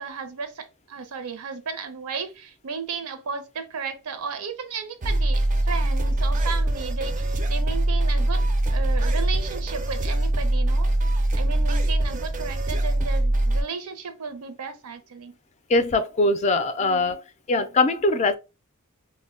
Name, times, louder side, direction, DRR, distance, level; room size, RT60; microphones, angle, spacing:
voice 1, 0.0-10.9 11.3-15.4 16.8-17.2, right 5 dB, 85° right, 0.6 m, -34 dB
sound 1, 5.0-13.6, right 1 dB, 35° right, 0.4 m, -23 dB
voice 2, 15.7-17.2 17.5-18.4, left 2 dB, 30° left, 0.4 m, -21 dB
2.1 x 2.1 x 3.6 m
head